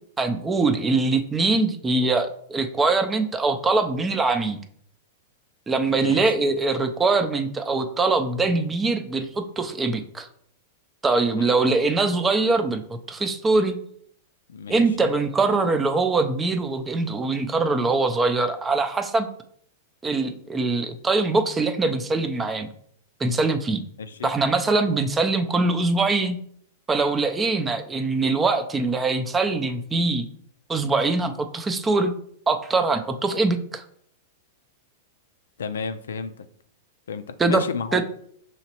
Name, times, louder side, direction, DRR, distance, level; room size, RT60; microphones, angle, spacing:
voice 1, 0.2-4.6 5.7-10.3 11.0-13.8 14.7-19.3 20.0-22.7 23.2-23.8 24.2-26.4 26.9-30.3 30.7-32.1 32.5-33.8 37.4-37.6 37.9-38.0, right 3 dB, 15° right, 7 dB, 0.4 m, -23 dB
voice 2, 5.9-6.2 11.3-11.5 14.5-15.1 24.0-24.3 35.6-36.5 37.1-38.0, left 5 dB, 90° left, 10 dB, 0.4 m, -32 dB
5.7 x 3.0 x 2.9 m, 0.65 s
hypercardioid pair, 125°, 0 cm